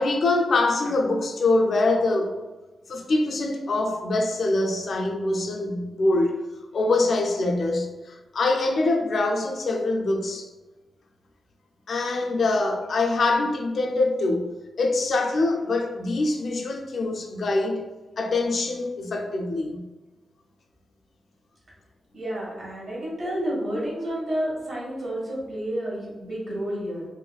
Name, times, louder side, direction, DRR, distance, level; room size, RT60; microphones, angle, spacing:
voice 1, 0.0-2.4 2.9-6.3 6.7-10.5 11.9-17.9 18.2-19.9, left 2 dB, 55° left, 2 dB, 0.4 m, -24 dB
voice 2, 22.1-27.1, right 1 dB, 50° right, -5 dB, 1.3 m, -30 dB
3.9 x 2.5 x 2.3 m, 1.2 s
wide cardioid pair, 145°, 0 cm